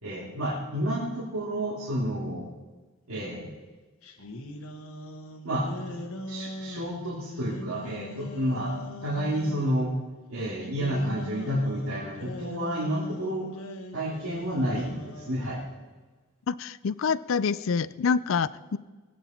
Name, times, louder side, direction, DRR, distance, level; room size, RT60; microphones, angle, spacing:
voice 1, 0.0-2.5 3.1-3.5 5.4-6.0 6.3-9.9 10.3-13.5 13.9-15.6, equal, 85° right, -7 dB, 3.1 m, -30 dB
sound 1, 4.0-9.8 10.6-15.7, left 1 dB, 80° left, 1.4 m, -41 dB
voice 2, 16.5-18.8, left 5 dB, 65° left, 18 dB, 0.4 m, -27 dB
21.0 x 9.2 x 4.5 m, 1.3 s
head